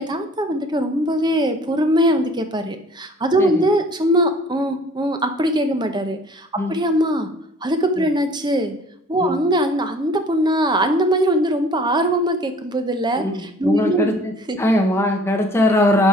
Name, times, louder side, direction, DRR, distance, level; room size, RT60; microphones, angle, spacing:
voice 1, 0.0-7.3 7.6-8.7 9.1-14.2 14.5-14.6, equal, 20° right, 7 dB, 0.8 m, -21 dB
voice 2, 13.2-16.1, left 1 dB, 10° left, 2 dB, 1.2 m, -20 dB
10.0 x 5.4 x 4.4 m, 0.72 s
head